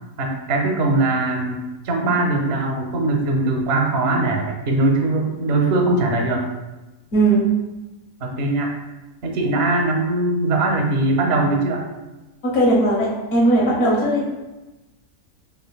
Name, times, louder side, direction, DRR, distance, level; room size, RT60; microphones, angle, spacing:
voice 1, 0.2-6.5 8.2-8.7 9.2-11.8, right 2 dB, 65° right, 1 dB, 0.7 m, -21 dB
voice 2, 7.1-7.5 12.4-14.2, right 1 dB, 60° left, -5 dB, 1.3 m, -18 dB
4.9 x 2.5 x 2.2 m, 1.1 s
omnidirectional pair, 1.5 m